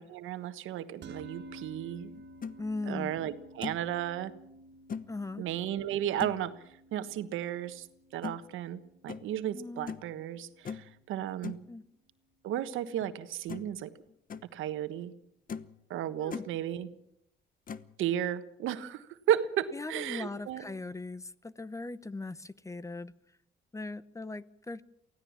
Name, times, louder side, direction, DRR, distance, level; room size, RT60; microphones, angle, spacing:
voice 1, 0.0-2.1 2.9-4.3 5.4-6.5 6.9-7.9 8.1-11.6 12.4-13.9 14.5-15.1 15.9-16.9 18.0-20.6, right 11 dB, 85° right, 11 dB, 1.3 m, -34 dB
sound 1, 1.0-11.5, right 1 dB, 60° right, 1.6 m, -53 dB
sound 2, 2.1-2.6 3.1-3.2 3.6-3.9 4.9-5.1 6.2-6.5 8.2-8.4 9.1-9.3 9.9-10.1 10.6-10.9 11.4-11.6 13.0-13.1 13.5-13.8 14.1-14.4 15.0-15.1 15.5-15.8 16.1-16.5 17.7-17.9, left 6 dB, 45° left, 1.0 m, -40 dB
voice 2, 2.6-3.1 5.1-5.5 9.5-9.9 11.7-11.8 16.2-16.4 19.7-23.1 23.7-24.8, left 3 dB, 15° left, 18 dB, 0.8 m, -39 dB
23.5 x 16.5 x 7.3 m, 0.74 s
cardioid pair, 90°, 20 cm